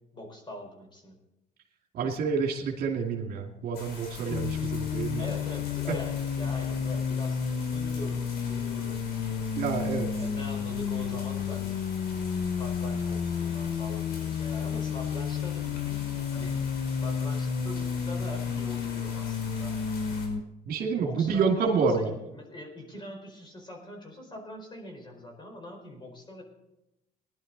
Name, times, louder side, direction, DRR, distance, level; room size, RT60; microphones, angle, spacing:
voice 1, 0.1-1.2 5.2-9.4 10.2-11.8 12.6-16.6 17.0-19.8 21.0-26.4, left 1 dB, 25° left, 3 dB, 4.5 m, -42 dB
voice 2, 1.9-5.3 9.6-10.1 20.7-22.1, right 5 dB, 65° right, 2 dB, 2.4 m, -28 dB
sound 1, 3.7-20.3, left 3 dB, 75° left, 5.0 m, -45 dB
sound 2, 4.3-20.4, left 7 dB, 45° left, 0.7 m, -31 dB
20.0 x 11.0 x 4.1 m, 0.90 s
cardioid pair, 110°, 17 cm